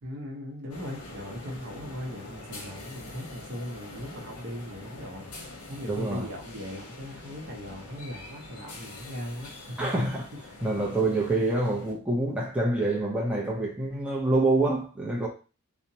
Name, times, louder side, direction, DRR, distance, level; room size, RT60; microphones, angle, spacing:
voice 1, 0.0-5.3 5.7-9.8, equal, 55° right, 0.7 m, -39 dB
sound 1, 0.7-11.9, left 2 dB, 70° left, 0.8 m, -44 dB
voice 2, 5.9-6.3 9.8-10.3 10.6-15.3, right 2 dB, 5° right, 0.5 m, -26 dB
2.8 x 2.1 x 2.6 m
head